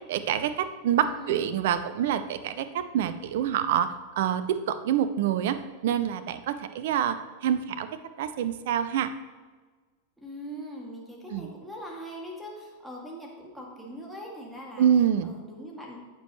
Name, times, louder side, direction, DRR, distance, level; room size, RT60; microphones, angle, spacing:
voice 1, 0.0-7.9 8.2-9.1 11.3-11.5 14.8-15.3, right 9 dB, 55° right, 12 dB, 0.6 m, -26 dB
voice 2, 1.0-1.5 10.2-14.9 15.2-16.0, equal, 5° right, -2 dB, 2.3 m, -41 dB
14.5 x 6.2 x 3.1 m, 1.4 s
figure-of-eight pair, 90°, 0 cm